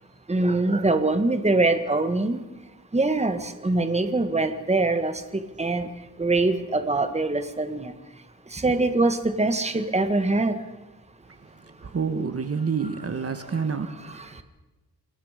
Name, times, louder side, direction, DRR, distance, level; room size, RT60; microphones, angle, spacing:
voice 1, 0.3-2.4 2.9-5.9 6.2-7.9 8.5-10.5 14.1-14.3, right 2 dB, 15° right, 9 dB, 1.7 m, -23 dB
voice 2, 11.8-14.4, right 5 dB, 40° right, 9 dB, 1.6 m, -28 dB
29.0 x 21.5 x 5.2 m, 1.1 s
wide cardioid pair, 145°, 38 cm